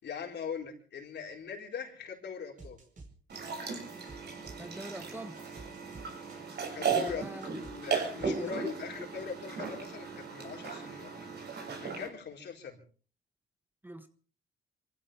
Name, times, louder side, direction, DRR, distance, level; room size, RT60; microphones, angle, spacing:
voice 1, 0.0-2.8 6.7-7.3 7.6-11.3 11.8-12.8, left 6 dB, 60° left, 2 dB, 4.5 m, -41 dB
sound 1, 2.6-3.6 3.9-8.6, right 3 dB, 40° right, 4.7 m, -52 dB
sound 2, 3.3-12.1, right 6 dB, 55° right, 6.6 m, -36 dB
voice 2, 4.6-5.3 6.9-7.5 8.4-8.5 13.8-14.1, right 1 dB, 10° right, 9 dB, 1.4 m, -43 dB
26.0 x 15.5 x 3.4 m, 0.39 s
cardioid pair, 90°, 20 cm